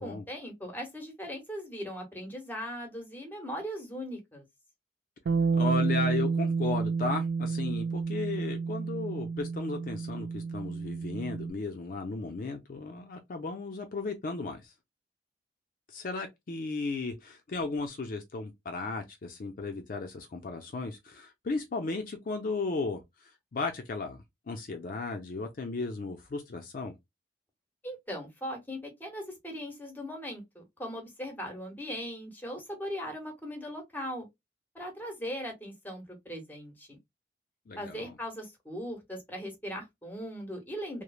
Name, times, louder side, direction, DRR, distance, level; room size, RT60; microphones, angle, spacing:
voice 1, 0.0-4.4 27.8-34.3 34.7-37.0 37.8-41.0, equal, 10° left, 0.9 m, -39 dB
Bass guitar, 5.3-11.5, right 5 dB, 75° right, 0.3 m, -30 dB
voice 2, 5.5-14.7 15.9-24.2 24.5-26.9 37.7-38.1, left 3 dB, 50° left, 0.4 m, -35 dB
3.0 x 2.0 x 2.3 m
head